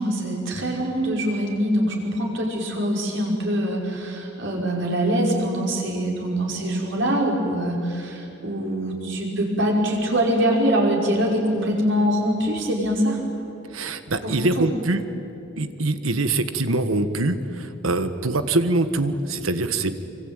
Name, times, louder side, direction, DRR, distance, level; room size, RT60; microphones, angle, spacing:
voice 1, 0.0-13.2 14.2-14.7, equal, 65° right, -1 dB, 5.7 m, -23 dB
voice 2, 13.7-15.0 15.6-20.0, right 2 dB, 85° right, 10 dB, 1.5 m, -24 dB
26.0 x 24.5 x 9.2 m, 2.8 s
head